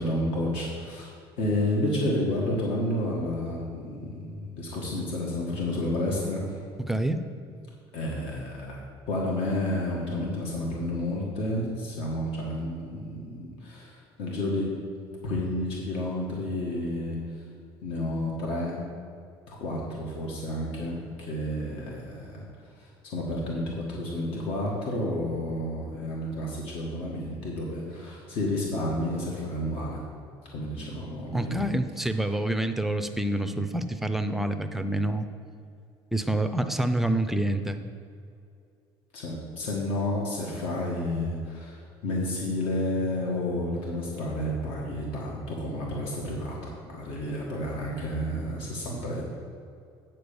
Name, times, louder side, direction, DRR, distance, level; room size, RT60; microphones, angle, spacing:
voice 1, 0.0-6.6 7.9-8.8 9.1-14.7 15.2-17.4 17.8-18.8 19.5-22.4 22.8-30.0 30.5-31.6 39.1-49.2, left 1 dB, 70° left, -3 dB, 1.6 m, -31 dB
voice 2, 6.9-7.2 31.3-35.3 36.1-37.8, right 1 dB, 5° right, 7 dB, 0.5 m, -27 dB
9.5 x 4.4 x 6.9 m, 2.5 s
cardioid pair, 145°, 10 cm